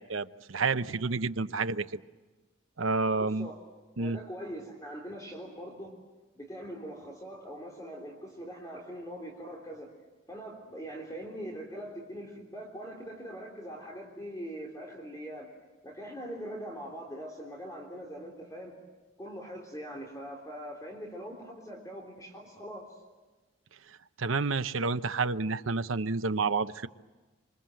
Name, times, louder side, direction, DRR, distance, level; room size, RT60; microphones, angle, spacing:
voice 1, 0.0-1.8 2.8-3.5 4.0-4.2 24.2-26.9, right 4 dB, 80° right, 11 dB, 0.9 m, -29 dB
voice 2, 3.2-3.6 4.0-6.0 6.3-9.9 10.3-15.5 15.8-18.8 19.2-22.9, equal, 15° left, 0 dB, 3.7 m, -42 dB
26.5 x 26.0 x 7.8 m, 1.2 s
head